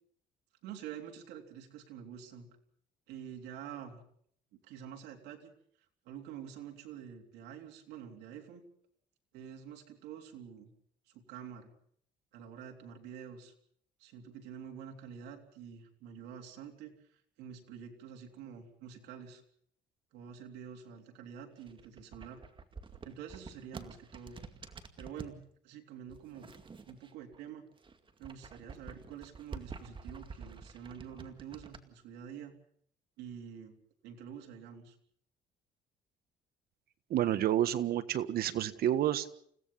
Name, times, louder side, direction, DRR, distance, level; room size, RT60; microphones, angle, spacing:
voice 1, 0.6-2.5 3.1-4.0 4.5-5.5 6.1-8.6 9.3-10.7 11.1-11.7 12.3-13.5 14.0-19.4 20.1-22.4 23.0-24.4 25.0-26.5 26.9-27.7 28.2-32.6 33.2-33.7 34.0-35.0, right 8 dB, 90° right, 3 dB, 3.6 m, -47 dB
sound 1, 21.5-25.4 26.1-27.4 27.7-31.8, right 4 dB, 30° right, 2.2 m, -48 dB
voice 2, 37.1-39.3, right 11 dB, 65° right, 13 dB, 1.5 m, -29 dB
29.5 x 17.0 x 5.6 m, 0.64 s
cardioid pair, 110°, 17 cm